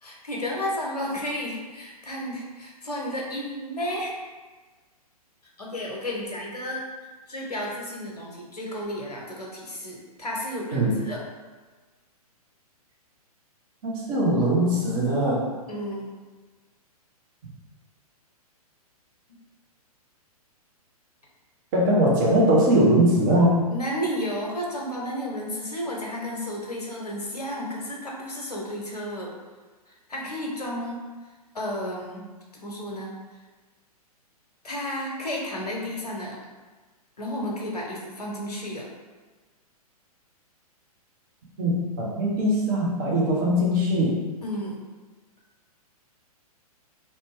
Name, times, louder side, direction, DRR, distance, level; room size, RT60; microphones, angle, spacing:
voice 1, 0.0-4.1 5.6-6.8 7.3-11.2 15.7-16.0 23.7-29.3 30.1-31.0 31.5-32.3 32.5-33.1 34.6-36.4 37.2-38.9 44.4-44.8, equal, 80° left, -2 dB, 0.7 m, -32 dB
voice 2, 13.8-15.5 21.7-23.6 41.6-44.2, right 1 dB, 30° right, -3 dB, 0.7 m, -21 dB
2.6 x 2.1 x 3.2 m, 1.3 s
figure-of-eight pair, 115°, 20 cm